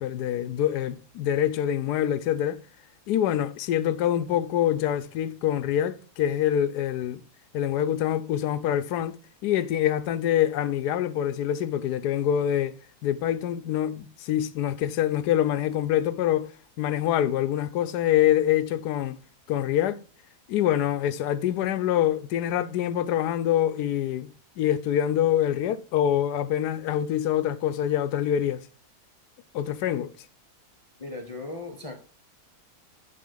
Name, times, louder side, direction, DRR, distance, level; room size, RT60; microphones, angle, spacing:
voice 1, 0.0-2.6 3.1-7.2 7.5-12.7 13.0-16.5 16.8-19.2 19.5-20.0 20.5-28.6 29.5-30.1, left 11 dB, 85° left, 1.2 m, -25 dB
voice 2, 31.0-32.0, left 2 dB, 30° left, 0.7 m, -37 dB
11.0 x 3.7 x 3.8 m
omnidirectional pair, 1.7 m